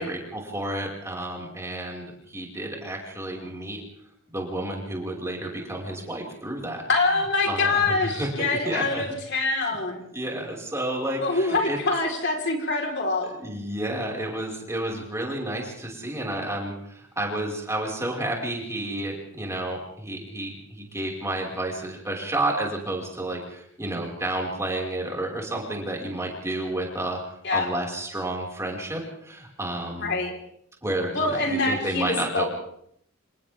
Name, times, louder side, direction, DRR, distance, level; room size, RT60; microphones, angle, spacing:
voice 1, 0.0-3.8 4.3-6.8 7.5-9.0 10.0-11.8 13.2-27.2 27.5-30.1 30.8-32.5, right 1 dB, 15° right, -1 dB, 5.5 m, -31 dB
voice 2, 6.9-10.0 11.2-13.3 27.4-27.7 30.0-30.3 31.1-32.4, left 3 dB, 55° left, 2 dB, 4.5 m, -25 dB
29.5 x 28.0 x 3.7 m, 0.69 s
head